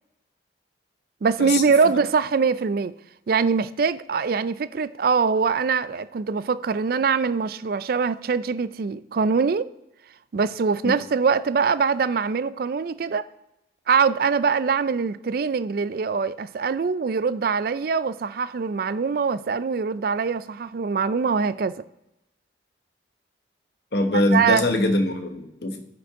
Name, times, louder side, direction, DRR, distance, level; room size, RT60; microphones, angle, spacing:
voice 1, 1.2-3.0 3.3-9.7 10.3-13.3 13.9-21.8 24.1-24.6, right 5 dB, 50° right, 0.3 m, -23 dB
voice 2, 23.9-25.8, left 1 dB, 60° left, 1.0 m, -22 dB
9.5 x 6.0 x 3.7 m
head